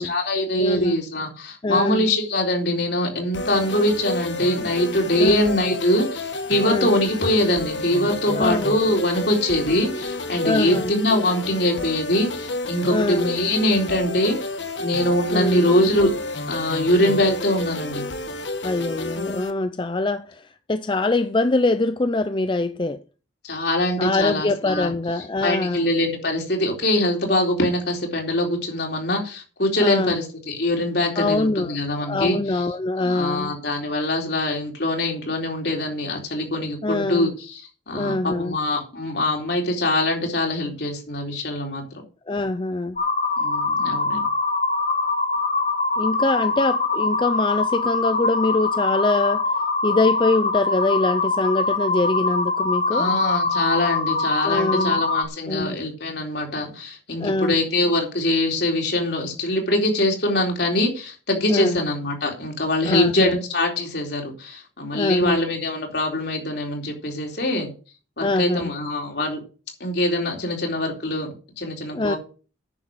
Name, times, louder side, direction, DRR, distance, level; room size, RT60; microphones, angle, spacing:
voice 1, 0.0-14.4 14.8-16.1 16.5-18.0 23.4-24.9 25.4-32.6 33.0-37.6 37.9-41.8 43.4-44.3 52.9-67.7 68.2-69.4 69.8-72.2, left 1 dB, 65° left, 3.8 m, -23 dB
voice 2, 0.6-1.0 1.6-2.1 5.2-5.4 6.6-6.9 8.3-8.7 10.4-10.9 12.9-13.3 15.3-15.7 18.6-23.0 24.0-25.9 29.8-30.2 31.2-31.8 32.0-33.5 36.8-37.3 37.9-38.6 42.3-43.0 46.0-49.5 49.8-53.1 54.4-55.0 55.5-55.8 57.2-57.6 61.5-61.8 62.8-63.4 64.9-65.4 68.2-68.7 71.9-72.1, left 2 dB, 25° left, 0.5 m, -23 dB
sound 1, 3.3-19.5, left 2 dB, 85° left, 1.6 m, -31 dB
sound 2, 43.0-55.2, left 3 dB, 45° left, 2.2 m, -23 dB
9.8 x 7.0 x 7.6 m
head